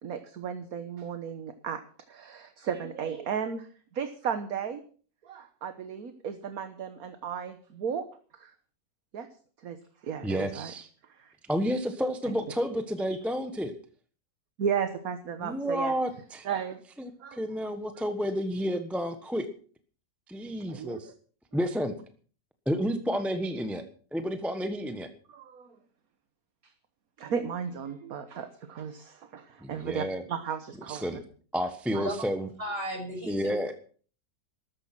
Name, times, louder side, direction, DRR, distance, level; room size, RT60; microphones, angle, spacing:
voice 1, 0.0-1.8 2.1-3.7 3.9-4.8 5.2-8.1 8.3-8.5 9.1-9.3 9.6-9.8 10.0-10.7 11.2-11.3 12.3-12.4 14.6-15.9 16.4-16.8 17.2-17.4 20.7-21.1 25.3-25.8 27.2-31.1 31.9-32.0, right 7 dB, 55° right, 9 dB, 1.5 m, -34 dB
voice 2, 10.2-10.9 11.5-13.7 15.4-16.5 17.0-19.5 20.3-21.1 21.5-22.0 22.7-23.8 24.1-25.1 29.6-30.2 30.9-31.2 31.5-32.5 33.3-33.7, equal, ahead, 7 dB, 0.9 m, -30 dB
voice 3, 32.6-33.5, right 1 dB, 30° right, 1 dB, 6.6 m, -34 dB
13.5 x 13.5 x 6.0 m, 0.43 s
omnidirectional pair, 2.0 m